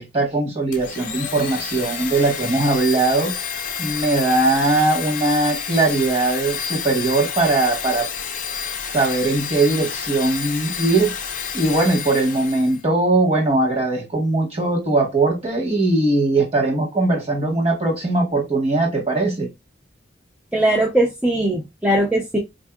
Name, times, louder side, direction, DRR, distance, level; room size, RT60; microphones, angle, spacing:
voice 1, 0.0-3.3 3.8-8.1 8.9-11.1 11.5-19.5, right 2 dB, 35° right, 1.2 m, -20 dB
Domestic sounds home sounds, 0.7-12.8, left 7 dB, 45° left, 0.6 m, -29 dB
voice 2, 20.5-22.4, right 1 dB, 5° right, 0.5 m, -19 dB
4.2 x 2.7 x 2.2 m
head